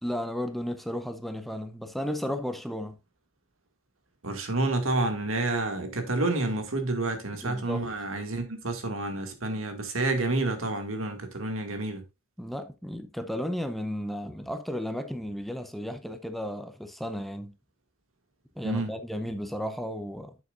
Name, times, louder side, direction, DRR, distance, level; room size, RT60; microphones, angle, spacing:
voice 1, 0.0-3.0 7.4-7.9 12.4-17.5 18.6-20.4, equal, ahead, 0.6 m, -34 dB
voice 2, 4.2-12.0 18.6-18.9, right 2 dB, 80° right, 2.1 m, -29 dB
10.5 x 7.4 x 2.5 m
head